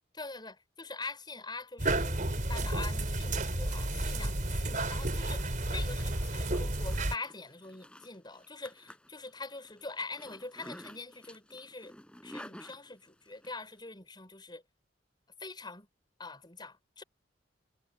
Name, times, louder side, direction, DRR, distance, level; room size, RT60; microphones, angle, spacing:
voice 1, 0.2-11.9 12.2-14.6 15.4-15.9 16.2-17.0, left 3 dB, 25° left, 5.6 m, -44 dB
sound 1, 1.8-7.1, right 1 dB, 45° right, 4.1 m, -31 dB
Zipper (clothing), 5.1-13.5, equal, 5° left, 5.3 m, -52 dB
head